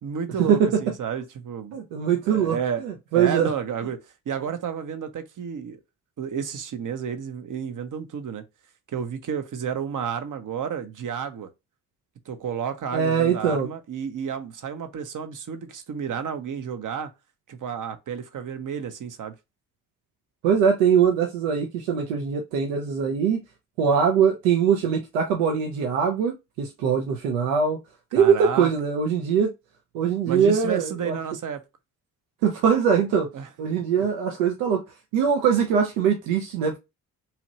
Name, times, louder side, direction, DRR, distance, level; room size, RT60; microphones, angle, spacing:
voice 1, 0.0-1.8 2.3-2.9 3.1-5.8 6.2-8.4 8.9-11.5 12.3-17.1 17.5-19.3 28.1-28.7 30.3-31.6 33.3-33.5 34.0-34.1, right 7 dB, 45° right, 0.8 m, -31 dB
voice 2, 1.7-2.6 2.8-3.5 12.9-13.7 20.4-23.4 23.8-27.8 28.1-29.5 29.9-31.2 32.4-33.3 33.6-34.8 35.1-36.8, right 7 dB, 80° right, 0.6 m, -22 dB
2.8 x 2.4 x 3.0 m
hypercardioid pair, 40°, 44 cm